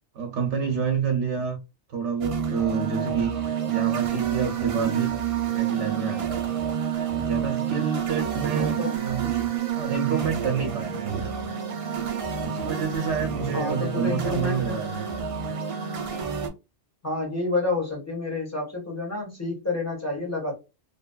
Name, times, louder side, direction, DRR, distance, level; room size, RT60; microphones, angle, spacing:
voice 1, 0.1-1.6 1.9-5.1 5.5-6.4 7.1-9.5 9.8-11.3 12.4-15.1, right 6 dB, 80° right, 0.9 m, -28 dB
sound 1, 2.2-16.5, right 8 dB, 55° right, 0.3 m, -29 dB
voice 2, 8.5-8.9 13.4-14.8 17.0-20.5, left 2 dB, 15° left, 1.2 m, -29 dB
2.9 x 2.2 x 2.2 m
omnidirectional pair, 1.2 m